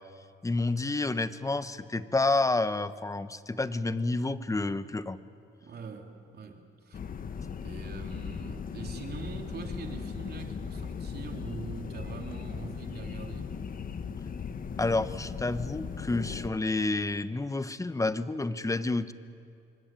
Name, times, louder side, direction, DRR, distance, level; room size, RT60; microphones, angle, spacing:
voice 1, 0.4-5.2 14.8-19.1, left 2 dB, 15° left, 13 dB, 1.1 m, -29 dB
voice 2, 5.6-7.0 7.6-13.6, right 5 dB, 55° right, 3 dB, 3.5 m, -43 dB
sound 1, 6.9-16.5, left 6 dB, 45° left, 1.3 m, -38 dB
26.5 x 23.5 x 9.2 m, 2.4 s
cardioid pair, 90°, 20 cm